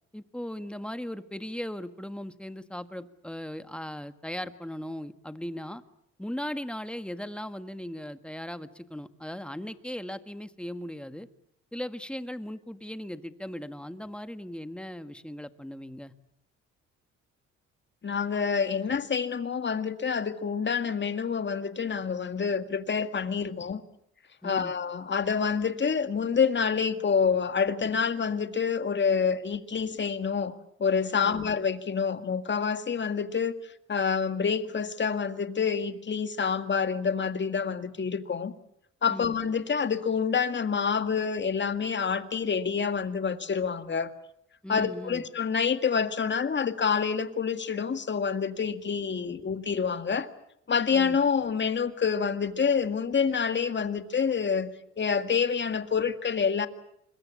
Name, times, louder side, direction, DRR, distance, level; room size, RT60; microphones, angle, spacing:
voice 1, 0.1-5.8 6.2-11.3 11.7-16.1 23.5-23.6 24.4-24.7 31.2-31.5 39.1-39.3 44.6-45.3 49.2-49.4 50.9-51.2, left 1 dB, 5° left, 11 dB, 1.6 m, -38 dB
voice 2, 18.0-23.8 24.4-38.5 39.0-44.1 44.7-50.3 50.7-56.7, left 6 dB, 40° left, 10 dB, 2.0 m, -27 dB
26.0 x 21.5 x 8.6 m, 0.75 s
cardioid pair, 90°, 30 cm